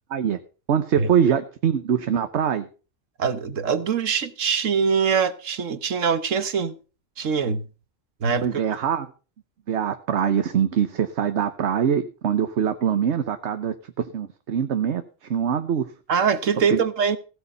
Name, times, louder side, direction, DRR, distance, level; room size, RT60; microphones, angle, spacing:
voice 1, 0.7-2.7 8.4-9.1 9.7-13.7 14.1-15.0 15.3-15.8 16.7-16.8, right 8 dB, 65° right, 1.2 m, -23 dB
voice 2, 3.2-6.7 7.2-7.6 8.2-8.6 16.1-17.2, right 6 dB, 85° right, 1.5 m, -23 dB
16.0 x 8.2 x 5.5 m
omnidirectional pair, 1.3 m